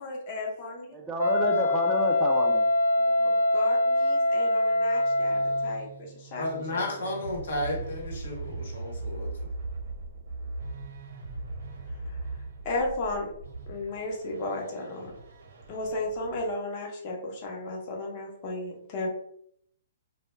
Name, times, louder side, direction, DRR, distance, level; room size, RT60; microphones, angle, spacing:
voice 1, 0.0-0.9 1.2-1.3 3.2-6.8 12.1-12.2 12.6-13.3 13.7-15.2 15.7-19.1, left 2 dB, 40° left, 0 dB, 0.7 m, -34 dB
voice 2, 0.9-2.7 3.1-3.4, right 2 dB, 10° right, 2 dB, 0.3 m, -31 dB
Wind instrument woodwind instrument, 1.2-5.9, left 2 dB, 85° left, 0.3 m, -24 dB
sound 1, 4.7-16.5, right 3 dB, 70° right, 0.8 m, -40 dB
voice 3, 6.4-9.3, left 1 dB, 70° left, 0 dB, 0.9 m, -33 dB
2.2 x 2.1 x 3.0 m, 0.69 s
hypercardioid pair, 140°, 0 cm